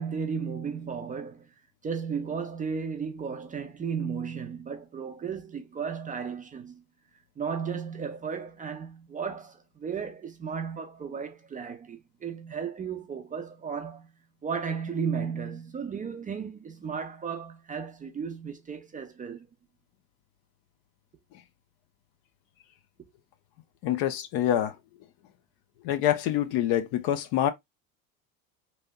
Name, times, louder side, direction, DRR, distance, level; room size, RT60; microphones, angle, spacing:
voice 1, 0.0-1.5 1.8-6.8 7.4-14.1 14.4-19.5, right 6 dB, 20° right, 0.4 m, -34 dB
voice 2, 23.8-24.8 25.8-27.5, left 11 dB, 55° left, 0.7 m, -26 dB
3.2 x 2.8 x 2.3 m
supercardioid pair, 100°, 43 cm